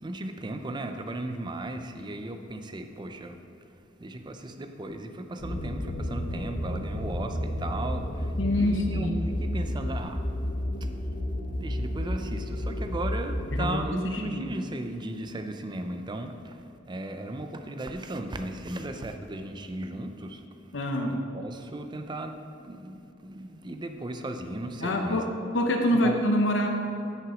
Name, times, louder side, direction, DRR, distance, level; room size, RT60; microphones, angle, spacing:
voice 1, 0.0-3.7 4.0-10.2 10.8-10.9 11.6-20.7 21.3-25.2 26.0-26.2, right 1 dB, 25° right, 7 dB, 0.5 m, -36 dB
sound 1, 5.4-13.8, left 1 dB, 50° left, 0.9 m, -31 dB
voice 2, 8.4-9.2 13.5-13.8 14.2-14.5 20.7-21.2 24.8-26.7, left 1 dB, 75° left, 3 dB, 0.9 m, -26 dB
7.7 x 6.1 x 5.0 m, 2.8 s
head